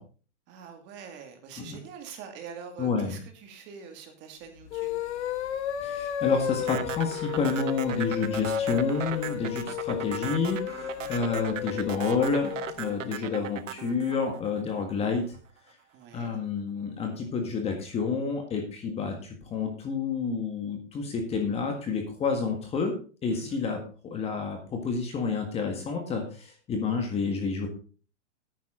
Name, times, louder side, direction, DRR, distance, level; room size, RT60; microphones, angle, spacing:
voice 1, 0.5-5.0 11.0-11.3 15.9-16.3 23.3-23.6, right 6 dB, 30° right, 5 dB, 2.3 m, -45 dB
voice 2, 2.8-3.2 5.8-15.4 16.1-22.9 23.2-27.7, left 5 dB, 15° left, 4 dB, 1.7 m, -29 dB
sound 1, 4.6-12.8, left 10 dB, 65° left, 1.6 m, -33 dB
sound 2, 6.7-15.0, right 10 dB, 90° right, 1.3 m, -37 dB
11.5 x 9.3 x 3.8 m, 0.38 s
hypercardioid pair, 155°, 37 cm